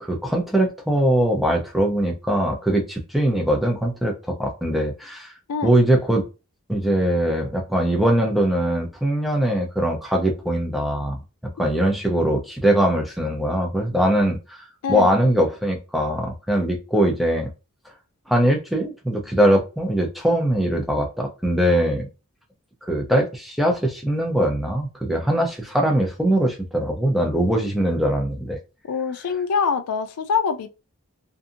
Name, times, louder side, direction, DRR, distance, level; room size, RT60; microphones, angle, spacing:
voice 1, 0.0-5.3 5.6-6.2 6.7-11.2 11.4-14.6 14.9-17.5 18.3-22.1 22.9-28.6, right 1 dB, ahead, 0.5 m, -21 dB
voice 2, 14.8-15.2 28.9-30.7, left 6 dB, 90° left, 0.4 m, -24 dB
2.6 x 2.5 x 2.5 m
head